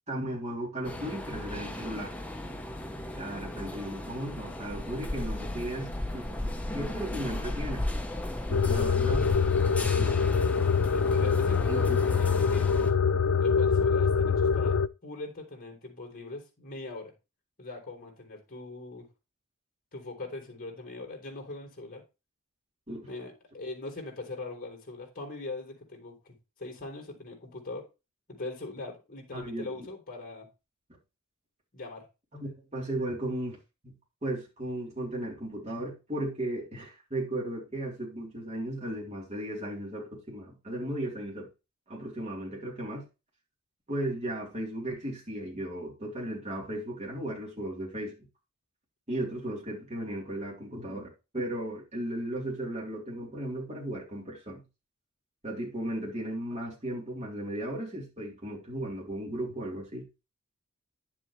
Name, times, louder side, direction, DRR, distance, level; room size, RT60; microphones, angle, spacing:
voice 1, 0.1-2.1 3.1-7.8 8.5-9.3 10.0-10.2 11.7-12.0 22.9-23.1 29.3-29.9 32.3-33.6 34.2-41.5 41.9-43.1 43.9-48.1 49.1-54.6 55.4-60.1, right 1 dB, 30° right, 3.7 m, -36 dB
sound 1, 0.8-12.9, left 1 dB, 5° left, 1.1 m, -36 dB
sound 2, 8.5-14.9, left 5 dB, 80° left, 0.5 m, -24 dB
voice 2, 10.9-12.7 13.4-17.1 17.6-19.1 19.9-22.0 23.1-27.8 28.3-30.5 31.7-32.0, left 2 dB, 40° left, 3.8 m, -40 dB
10.5 x 7.4 x 3.3 m
head